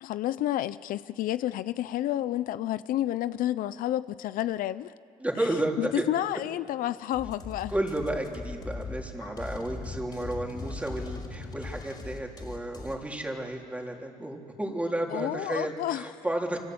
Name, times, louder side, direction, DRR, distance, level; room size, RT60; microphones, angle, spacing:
voice 1, 0.0-4.9 5.8-7.7 15.1-16.1, left 13 dB, 75° left, 0.6 m, -30 dB
voice 2, 5.2-6.0 7.7-16.6, right 1 dB, 10° right, 3.6 m, -32 dB
sound 1, 7.1-13.0, left 3 dB, 30° left, 4.5 m, -39 dB
27.5 x 25.0 x 7.9 m
cardioid pair, 100°, 14 cm